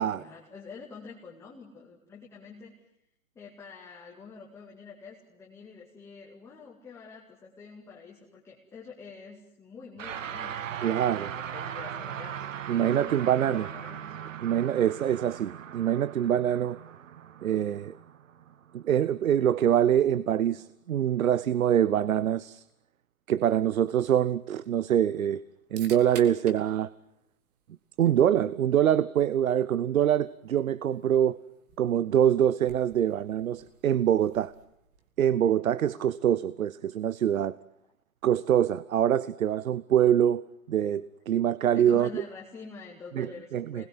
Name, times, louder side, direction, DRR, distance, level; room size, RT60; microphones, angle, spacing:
voice 1, 0.0-2.8 3.3-12.5 12.7-14.2 35.9-36.1 41.7-43.9, left 5 dB, 5° left, 2.3 m, -47 dB
sound 1, 10.0-19.5, right 9 dB, 70° right, 1.3 m, -39 dB
voice 2, 10.8-11.3 12.7-13.7 14.4-16.8 17.4-17.9 18.7-22.6 23.3-25.4 25.7-26.9 28.0-31.4 31.8-34.5 35.2-37.6 38.2-42.2 43.2-43.3 43.5-43.9, right 10 dB, 85° right, 0.9 m, -24 dB
sound 2, 23.3-35.3, right 6 dB, 30° right, 2.3 m, -54 dB
27.0 x 21.0 x 9.6 m
hypercardioid pair, 165°, 40 cm